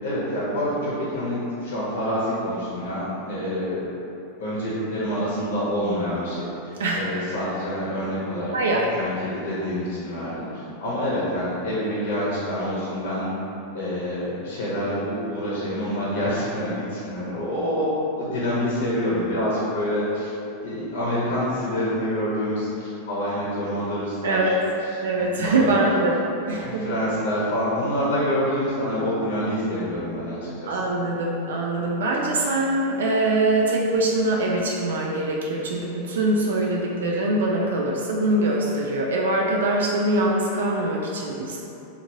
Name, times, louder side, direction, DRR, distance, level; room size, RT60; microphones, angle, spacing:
voice 1, 0.0-3.9 4.4-8.5 9.0-13.3 13.7-17.9 18.2-20.3 20.6-24.5 24.8-25.9 26.5-30.8, equal, 75° left, -8 dB, 0.8 m, -27 dB
voice 2, 8.5-8.9 24.2-24.6 25.0-26.1 26.5-27.0 30.6-41.6, right 2 dB, 90° right, -2 dB, 0.3 m, -23 dB
3.1 x 2.4 x 2.6 m, 2.8 s
hypercardioid pair, 120°, 0 cm